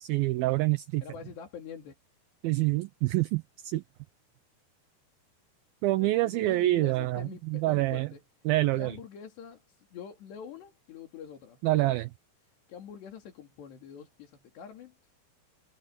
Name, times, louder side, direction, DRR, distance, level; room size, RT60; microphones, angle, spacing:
voice 1, 0.0-1.0 2.4-3.8 5.8-8.1 8.5-9.0 11.6-12.1, right 18 dB, 75° right, 2.3 m, -26 dB
voice 2, 1.0-2.0 6.0-8.2 8.7-12.0 12.7-15.0, left 7 dB, 85° left, 5.2 m, -45 dB
omnidirectional pair, 4.8 m